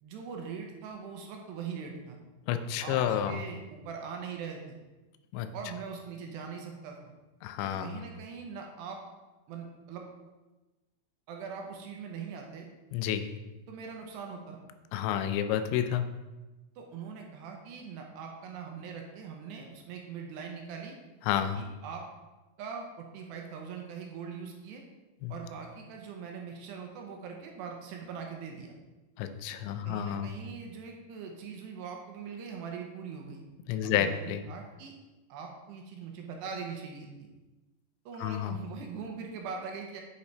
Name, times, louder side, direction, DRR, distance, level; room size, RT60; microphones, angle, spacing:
voice 1, 0.0-2.2 2.8-4.8 5.5-7.1 7.6-9.0 9.5-10.0 11.3-12.7 13.7-14.6 16.8-21.0 21.6-22.0 22.6-24.8 25.3-28.7 29.7-33.4 33.8-34.9 35.3-37.3 38.1-40.0, right 6 dB, 80° right, 2 dB, 2.8 m, -41 dB
voice 2, 2.5-3.4 5.3-5.5 7.4-8.0 12.9-13.3 14.9-16.1 21.3-21.6 25.2-25.3 29.2-30.3 33.7-34.4 38.2-38.6, left 10 dB, 85° left, 9 dB, 2.9 m, -30 dB
8.1 x 6.7 x 3.3 m, 1.1 s
omnidirectional pair, 5.2 m